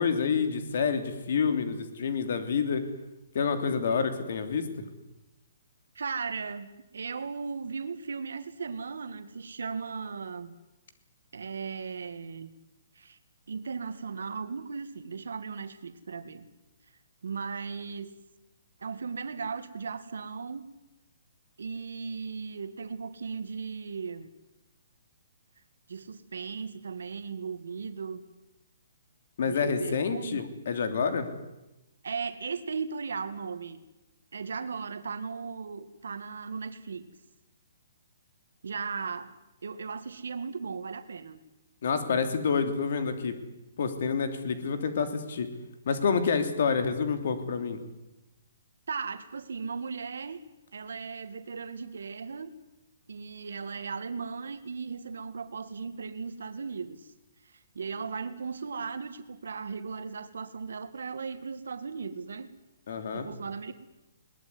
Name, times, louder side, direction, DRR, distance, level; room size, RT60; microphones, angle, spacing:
voice 1, 0.0-2.8 3.3-4.6 29.4-31.3 41.8-43.3 43.8-45.5 45.9-47.8 62.9-63.3, left 5 dB, 50° left, 8 dB, 3.1 m, -28 dB
voice 2, 6.0-10.5 11.3-12.5 13.0-13.2 13.5-16.5 17.2-18.1 18.8-20.6 21.6-24.3 25.9-28.2 29.4-30.5 32.0-33.8 34.3-37.1 38.6-39.4 39.6-41.4 48.9-50.4 50.7-52.5 53.1-57.1 57.4-62.5 63.1-63.7, right 5 dB, 85° right, 10 dB, 2.0 m, -37 dB
21.5 x 19.5 x 9.7 m, 0.97 s
hypercardioid pair, 175°, 0 cm